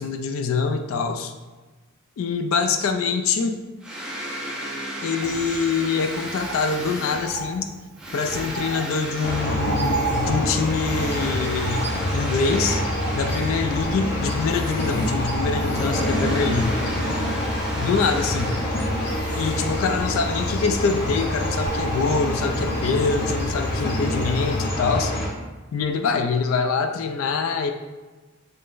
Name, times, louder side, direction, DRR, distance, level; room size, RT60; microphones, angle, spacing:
voice 1, 0.0-1.3 2.2-3.6 5.0-7.7 8.1-12.8 13.2-16.8 17.8-18.6 19.4-25.1 25.7-27.7, left 5 dB, 75° left, 7 dB, 0.3 m, -24 dB
sound 1, 3.8-13.9 14.2-20.2, right 1 dB, 5° right, 0.6 m, -35 dB
Bird, 5.2-24.3 24.6-24.7, right 4 dB, 85° right, 0.4 m, -36 dB
sound 2, 9.2-25.3, left 1 dB, 55° left, 0.7 m, -26 dB
3.6 x 3.3 x 2.5 m, 1.2 s
head